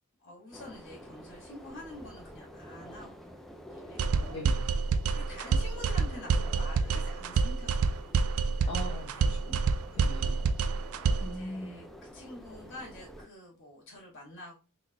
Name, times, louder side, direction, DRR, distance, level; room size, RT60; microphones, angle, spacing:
voice 1, 0.2-3.1 3.7-4.4 5.1-8.2 8.6-8.8 9.1-9.4 10.9-11.9 12.1-14.5, left 1 dB, 60° left, -2 dB, 2.1 m, -47 dB
sound 1, 0.5-13.3, equal, ahead, 0.5 m, -49 dB
sound 2, 4.0-11.4, right 5 dB, 85° right, 0.4 m, -27 dB
voice 2, 4.3-4.7 8.7-10.4 11.2-11.8, equal, 25° left, -5 dB, 1.1 m, -41 dB
3.9 x 3.8 x 2.3 m, 0.31 s
head